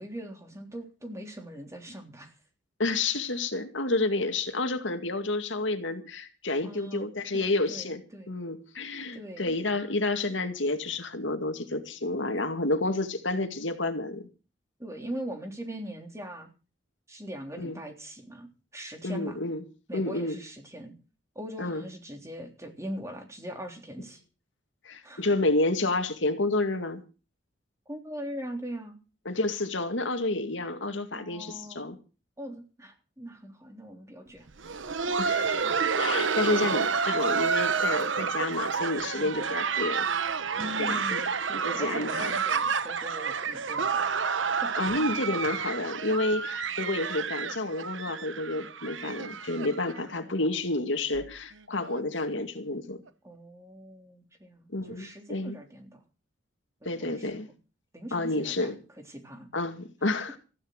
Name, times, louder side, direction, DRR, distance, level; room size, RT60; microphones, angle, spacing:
voice 1, 0.0-2.3 6.6-8.3 9.1-9.6 14.8-16.5 17.1-18.5 18.7-19.4 19.9-20.9 21.3-24.2 25.0-25.3 27.9-29.0 31.1-31.8 32.4-34.5 34.9-35.1 39.1-39.4 40.6-44.0 44.6-44.7 49.9-50.6 53.2-56.0 56.8-57.3 57.9-58.8 59.1-59.5, equal, 15° right, 3.4 m, -41 dB
voice 2, 2.8-8.0 8.3-14.3 17.6-17.8 19.0-19.6 19.9-20.4 21.6-21.8 24.8-27.0 29.3-32.0 35.2-35.6 36.0-40.1 40.8-41.2 41.5-42.4 44.8-53.0 54.7-55.6 56.8-57.5 58.1-58.8 59.5-60.4, left 2 dB, 75° left, 2.2 m, -30 dB
Laughter, 34.5-50.2 50.4-50.5 51.1-51.3 51.8-52.0 53.1-53.2, right 5 dB, 85° right, 1.1 m, -29 dB
15.5 x 11.0 x 6.6 m
head